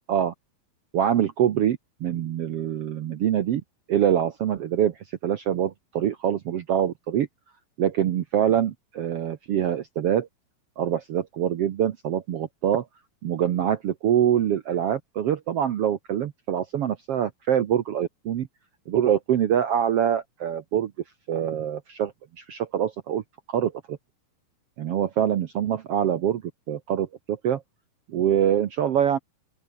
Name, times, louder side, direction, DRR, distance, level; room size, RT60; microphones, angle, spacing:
voice 1, 0.9-3.6 3.9-7.3 7.8-10.3 10.8-12.8 13.2-18.5 18.9-20.9 21.3-23.2 23.5-24.0 24.8-26.4 26.7-27.6 28.1-29.2, right 10 dB, 75° right, 1.4 m, -24 dB
open air
omnidirectional pair, 4.2 m